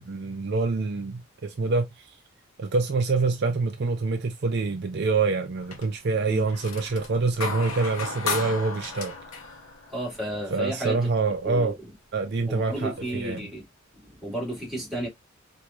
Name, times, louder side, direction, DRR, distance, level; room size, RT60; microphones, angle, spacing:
voice 1, 0.0-1.9 2.6-9.1 10.5-11.7 12.1-13.5, right 3 dB, 50° right, 0.5 m, -26 dB
sound 1, 5.6-6.0 6.4-10.5 12.1-12.2 12.7-13.4, left 4 dB, 85° left, 0.9 m, -34 dB
voice 2, 9.9-11.0 11.4-11.7 12.4-13.6 14.0-15.1, right 1 dB, ahead, 1.9 m, -32 dB
4.5 x 2.7 x 2.3 m
head